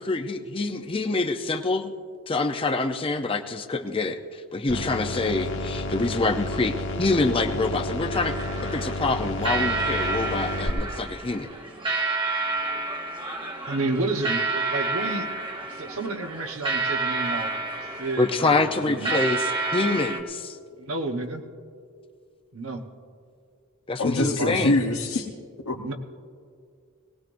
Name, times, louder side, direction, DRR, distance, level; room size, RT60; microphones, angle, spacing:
voice 1, 0.0-1.9 2.3-8.3 8.7-11.5 18.2-20.6 23.9-24.8, left 3 dB, 25° left, 6 dB, 0.6 m, -26 dB
sound 1, 4.7-10.7, left 1 dB, 60° left, 1.4 m, -31 dB
sound 2, 8.1-20.2, right 3 dB, 25° right, 1.2 m, -30 dB
voice 2, 13.7-15.4 15.7-17.5 17.8-19.2 20.8-21.4 22.5-22.8 24.2-24.7 25.7-25.9, right 2 dB, 85° right, 3 dB, 1.2 m, -31 dB
voice 3, 24.0-25.2 25.7-25.9, left 2 dB, 85° left, -1 dB, 1.0 m, -24 dB
20.5 x 18.5 x 2.6 m, 2.2 s
head